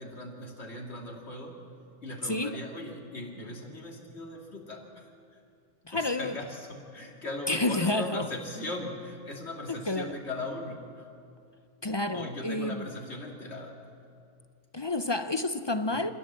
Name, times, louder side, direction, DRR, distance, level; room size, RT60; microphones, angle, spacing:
voice 1, 0.0-1.6 2.0-5.1 5.9-11.1 12.1-13.8, left 2 dB, 55° left, 0 dB, 2.9 m, -39 dB
voice 2, 2.2-2.6 5.9-6.4 7.5-8.3 9.7-10.2 11.8-12.9 14.7-16.1, left 2 dB, 30° left, 10 dB, 0.5 m, -29 dB
26.0 x 16.0 x 7.6 m, 2.4 s
omnidirectional pair, 1.3 m